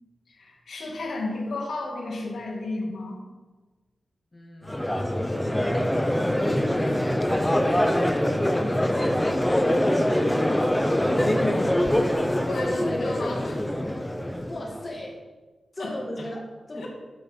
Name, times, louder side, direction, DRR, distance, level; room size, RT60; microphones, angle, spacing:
voice 1, 0.3-3.2 11.1-11.6 12.4-13.6 15.8-16.0 16.8-16.9, left 2 dB, 85° left, -1 dB, 2.3 m, -33 dB
voice 2, 4.3-9.4 14.4-15.2 15.7-16.9, left 1 dB, 25° left, -1 dB, 1.8 m, -39 dB
Crowd, 4.7-14.8, left 1 dB, 5° left, 0.7 m, -24 dB
12.0 x 6.6 x 5.3 m, 1.3 s
wide cardioid pair, 135°, 0 cm